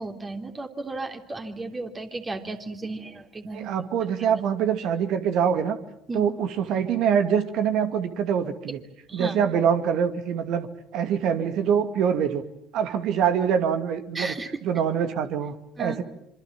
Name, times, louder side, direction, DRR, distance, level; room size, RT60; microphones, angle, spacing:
voice 1, 0.0-3.7 6.1-6.3 9.1-9.4 14.1-14.5 15.8-16.0, right 2 dB, 25° right, 5 dB, 3.3 m, -34 dB
voice 2, 3.5-5.8 6.1-8.8 9.1-10.7 10.9-12.4 12.7-14.3 14.6-16.0, right 8 dB, 60° right, 9 dB, 2.3 m, -24 dB
26.5 x 25.5 x 7.5 m, 0.75 s
hypercardioid pair, 60°, 0 cm